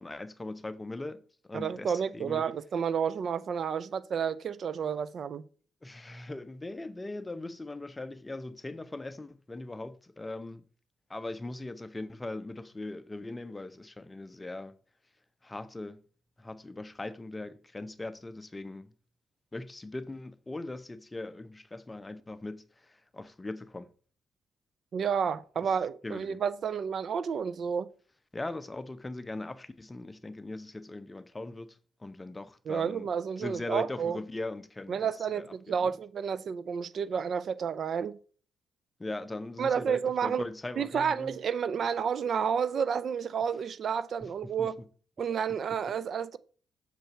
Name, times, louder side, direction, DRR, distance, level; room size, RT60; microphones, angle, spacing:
voice 1, 0.0-2.4 5.8-10.6 11.1-14.7 15.4-16.0 16.4-18.9 19.5-23.9 25.6-25.7 26.0-26.4 28.3-33.1 33.4-36.0 39.0-41.4 44.2-44.7, left 2 dB, 15° left, 0.7 m, -40 dB
voice 2, 1.5-5.4 24.9-27.9 32.7-34.2 34.9-38.2 39.6-40.4 40.8-44.8 45.2-46.4, right 7 dB, 55° right, 0.5 m, -30 dB
6.7 x 4.5 x 6.7 m
cardioid pair, 90°, 0 cm